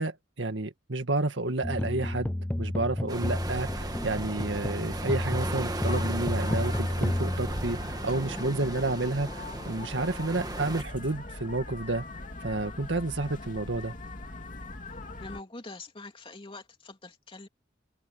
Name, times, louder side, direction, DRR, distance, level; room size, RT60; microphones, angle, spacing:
voice 1, 0.0-12.0 12.4-14.0, right 2 dB, 75° right, 1.9 m, -30 dB
sound 1, 1.6-8.3, left 1 dB, 10° left, 0.3 m, -31 dB
sound 2, 3.1-10.8, right 2 dB, 20° right, 1.6 m, -37 dB
sound 3, 3.2-15.4, left 2 dB, 45° left, 2.7 m, -41 dB
voice 2, 15.2-17.5, left 2 dB, 30° left, 3.1 m, -44 dB
head